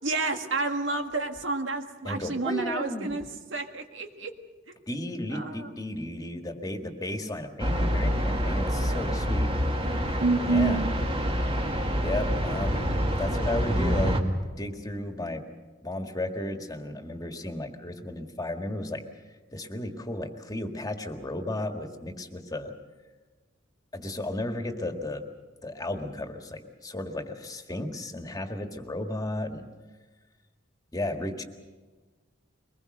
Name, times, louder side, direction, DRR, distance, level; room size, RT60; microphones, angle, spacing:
voice 1, 0.0-4.3 4.7-4.8 5.3-5.7 10.2-10.9, right 3 dB, 90° right, 5 dB, 1.7 m, -29 dB
voice 2, 2.0-3.1 4.9-9.5 10.4-10.8 12.0-12.9 13.2-14.2 14.6-15.4 15.8-19.0 19.5-22.7 23.9-25.2 25.6-29.7 30.9-31.4, left 1 dB, 20° left, 5 dB, 1.8 m, -34 dB
sound 1, 7.6-14.2, equal, 30° right, 1.9 m, -27 dB
23.0 x 20.5 x 6.6 m, 1.3 s
head